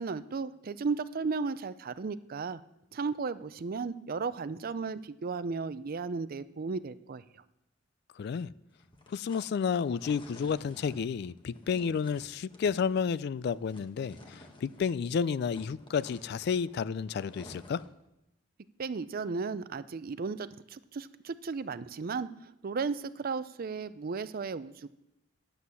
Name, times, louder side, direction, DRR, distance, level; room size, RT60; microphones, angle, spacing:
voice 1, 0.0-2.6 2.9-7.2 18.8-22.3 22.6-24.9, right 4 dB, 50° right, 0.5 m, -35 dB
voice 2, 8.2-8.5 9.1-17.8, left 6 dB, 55° left, 0.3 m, -31 dB
sound 1, 8.7-15.0 15.3-18.0, left 1 dB, 25° left, 1.3 m, -53 dB
9.8 x 8.0 x 6.9 m
head